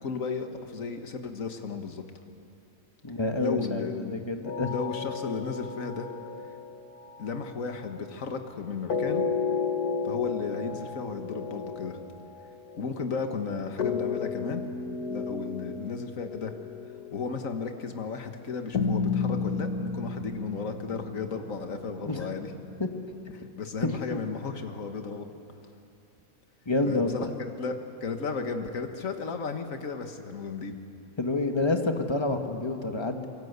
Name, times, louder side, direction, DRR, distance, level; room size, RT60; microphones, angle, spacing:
voice 1, 0.0-2.0 3.4-4.3 4.6-6.1 7.2-9.2 10.0-12.0 12.8-14.6 15.1-16.5 17.1-22.5 23.5-25.3 26.9-30.8, left 4 dB, 60° left, 6 dB, 1.9 m, -34 dB
voice 2, 3.0-4.7 22.0-22.3 22.8-22.9 23.8-24.2 26.6-27.3 31.2-33.3, left 2 dB, 20° left, 5 dB, 1.5 m, -28 dB
sound 1, 4.4-8.1 8.9-17.9 18.7-23.4, left 5 dB, 75° left, 2.1 m, -33 dB
26.5 x 23.0 x 8.2 m, 2.7 s
omnidirectional pair, 1.6 m